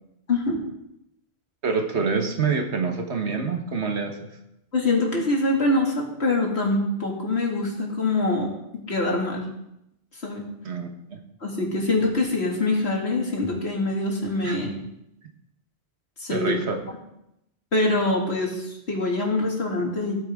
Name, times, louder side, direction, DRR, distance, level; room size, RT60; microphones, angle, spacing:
voice 1, 1.6-4.2 10.6-11.2 14.4-14.6 16.3-16.8, right 5 dB, 80° right, 4 dB, 1.6 m, -26 dB
voice 2, 4.7-8.5 8.9-9.4 10.2-10.4 11.4-14.7 16.2-16.6 17.7-20.2, left 2 dB, 75° left, -1 dB, 2.7 m, -24 dB
15.5 x 8.9 x 3.6 m, 0.83 s
omnidirectional pair, 1.1 m